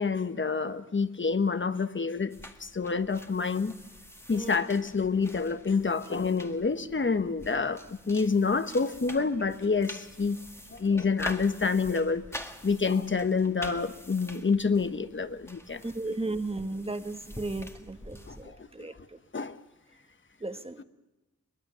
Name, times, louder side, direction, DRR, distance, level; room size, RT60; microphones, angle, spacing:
voice 1, 0.0-2.4 2.6-3.7 4.3-7.8 8.1-10.4 10.8-12.2 12.6-15.8 18.3-18.4 19.3-19.6, left 4 dB, 35° left, 1.2 m, -27 dB
sound 1, 2.3-18.4, equal, 10° left, 1.9 m, -46 dB
voice 2, 4.3-4.6 15.8-19.2 20.4-20.8, right 2 dB, 20° right, 1.5 m, -35 dB
22.5 x 21.5 x 6.9 m
wide cardioid pair, 85°, 32 cm